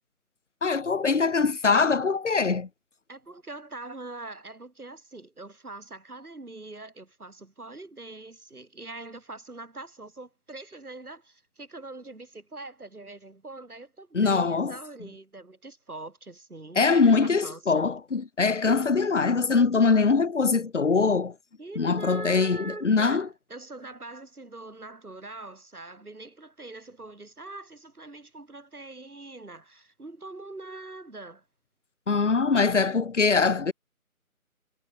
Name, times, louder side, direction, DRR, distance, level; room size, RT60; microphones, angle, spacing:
voice 1, 0.6-2.7 14.1-14.7 16.8-21.3 21.8-23.3 32.1-33.7, left 4 dB, 55° left, 0.6 m, -23 dB
voice 2, 3.1-17.9 21.6-31.4, right 2 dB, 85° right, 4.2 m, -43 dB
figure-of-eight pair, 180°, 43 cm